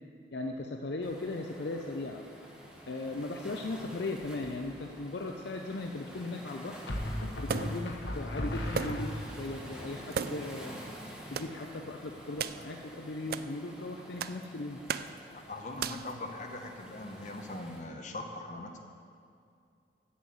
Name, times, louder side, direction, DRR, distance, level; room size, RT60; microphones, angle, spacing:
voice 1, 0.3-2.2 2.9-6.8 7.4-10.7 11.3-14.8, left 2 dB, 65° left, 3 dB, 0.5 m, -38 dB
Waves surf, 1.0-17.8, equal, 5° right, 1.2 m, -49 dB
sound 1, 4.2-4.7 6.9-9.5, left 1 dB, 85° left, 1.2 m, -36 dB
sound 2, 7.5-7.9 8.7-9.2 9.4-9.5 10.1-10.6 11.3-11.5 12.4-12.6 13.3-13.5 14.2-14.4 14.9-15.2 15.8-16.1, right 6 dB, 55° right, 0.3 m, -35 dB
voice 2, 15.3-18.8, left 2 dB, 45° left, 3 dB, 1.0 m, -41 dB
8.4 x 7.2 x 7.8 m, 2.4 s
head